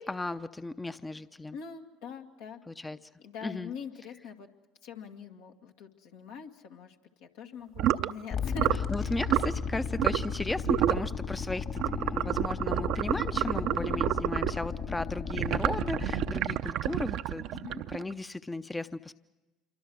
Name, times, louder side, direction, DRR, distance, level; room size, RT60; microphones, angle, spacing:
voice 1, 0.0-1.6 2.7-3.0 3.4-3.7 8.9-17.5 17.9-19.1, left 2 dB, 15° left, 12 dB, 0.7 m, -35 dB
voice 2, 1.5-2.6 3.2-4.5 4.8-7.0 7.2-8.7 9.0-9.1 13.8-14.1 17.5-17.9, left 6 dB, 80° left, 2 dB, 2.1 m, -43 dB
sound 1, 7.8-8.1 8.6-8.9 9.2-9.5 10.0-10.4 10.6-11.1 11.8-14.6 15.3-18.1, right 12 dB, 65° right, 0.7 m, -29 dB
sound 2, 8.3-16.3, left 6 dB, 55° left, 3.1 m, -35 dB
27.0 x 24.0 x 6.3 m, 1.2 s
hypercardioid pair, 70°, 0 cm